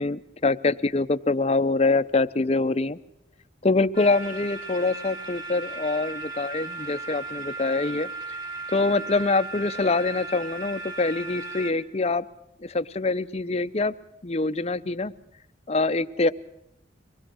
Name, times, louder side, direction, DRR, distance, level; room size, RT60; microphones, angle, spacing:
voice 1, 0.0-3.0 3.6-8.1 8.7-12.2 12.6-13.9 14.2-15.1 15.7-16.3, left 3 dB, 35° left, 12 dB, 0.7 m, -24 dB
sound 1, 3.9-11.7, right 3 dB, 25° right, 4.1 m, -36 dB
24.5 x 19.5 x 6.2 m, 0.79 s
head